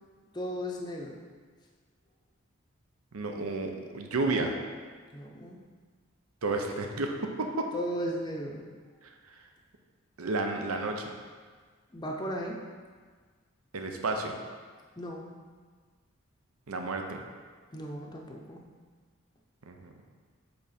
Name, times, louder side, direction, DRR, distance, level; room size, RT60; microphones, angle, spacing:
voice 1, 0.3-1.2 5.1-5.6 7.7-8.7 11.9-12.6 15.0-15.3 17.7-18.6, equal, 20° left, 0 dB, 0.5 m, -36 dB
voice 2, 3.1-4.6 6.4-7.7 9.3-9.4 10.2-11.1 13.7-14.4 16.7-17.2 19.7-19.9, right 2 dB, 90° right, 3 dB, 0.7 m, -31 dB
8.6 x 3.5 x 4.3 m, 1.5 s
head